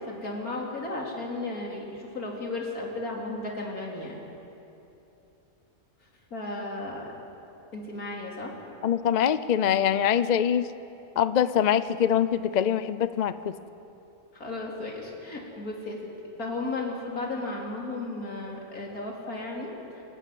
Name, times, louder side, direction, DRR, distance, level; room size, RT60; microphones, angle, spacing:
voice 1, 0.1-4.1 6.3-7.1 7.7-8.5 14.4-16.0 16.4-19.7, left 2 dB, 85° left, -1 dB, 3.7 m, -34 dB
voice 2, 8.8-10.7 11.2-13.5, left 9 dB, 55° left, 14 dB, 0.5 m, -24 dB
26.5 x 12.0 x 9.4 m, 2.9 s
omnidirectional pair, 1.5 m